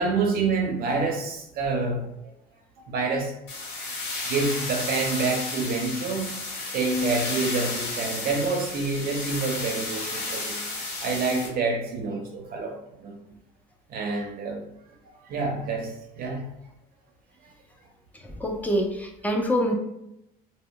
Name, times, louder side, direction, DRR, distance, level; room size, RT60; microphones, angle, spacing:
voice 1, 0.0-2.1 2.9-3.4 4.2-10.6 11.0-13.1 13.9-14.6 15.0-16.5 17.4-17.5, right 3 dB, 60° right, 1 dB, 0.5 m, -27 dB
sound 1, 3.5-11.5, left 2 dB, 85° left, 1.1 m, -33 dB
voice 2, 18.1-19.7, equal, 10° left, 2 dB, 0.5 m, -26 dB
2.1 x 2.0 x 3.7 m, 0.83 s
cardioid pair, 110°, 17 cm